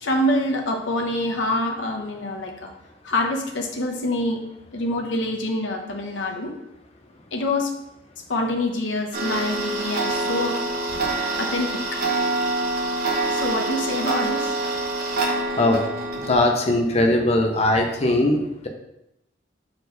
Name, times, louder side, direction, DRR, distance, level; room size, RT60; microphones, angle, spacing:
voice 1, 0.0-2.7 3.0-4.4 4.7-6.5 7.3-7.7 8.3-10.6 11.4-11.7 13.3-14.5, left 1 dB, 90° left, 1 dB, 1.0 m, -25 dB
Tick-tock, 9.1-16.3, right 2 dB, 55° right, 1.2 m, -25 dB
voice 2, 16.3-18.7, left 1 dB, 35° left, 3 dB, 0.6 m, -20 dB
4.4 x 4.4 x 5.0 m, 0.85 s
head